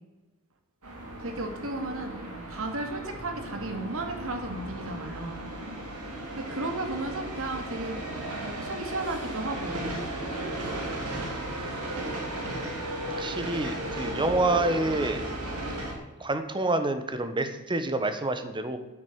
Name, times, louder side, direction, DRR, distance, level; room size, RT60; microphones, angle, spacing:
sound 1, 0.8-15.9, right 1 dB, 90° right, 3.4 m, -35 dB
voice 1, 1.2-2.1 2.5-5.4 6.4-8.0 8.3-10.0, right 2 dB, 65° right, 5 dB, 2.3 m, -34 dB
voice 2, 13.2-15.2 16.2-18.8, right 2 dB, 20° right, 9 dB, 1.2 m, -27 dB
9.8 x 9.1 x 8.0 m, 1.1 s
head